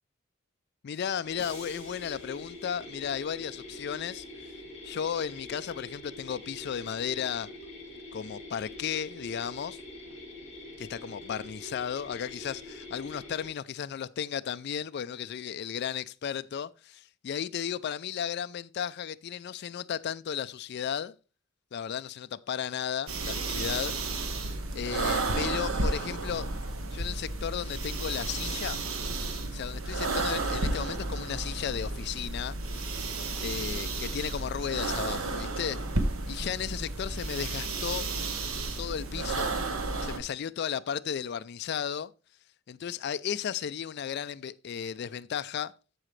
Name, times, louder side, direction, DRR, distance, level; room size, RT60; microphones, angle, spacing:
voice 1, 0.8-4.5 4.8-7.5 8.1-9.8 10.8-21.1 21.7-23.9 24.7-26.5 26.9-28.8 29.5-32.5 33.4-35.8 36.3-38.1 38.8-39.6 40.0-42.1 42.7-45.7, left 8 dB, 55° left, 0.3 m, -34 dB
sound 1, 1.2-13.5, left 1 dB, 35° left, 5.4 m, -45 dB
sound 2, 1.4-3.6, equal, 15° right, 3.5 m, -52 dB
sound 3, 23.1-40.2, right 2 dB, 85° right, 1.2 m, -32 dB
14.0 x 4.9 x 3.2 m
head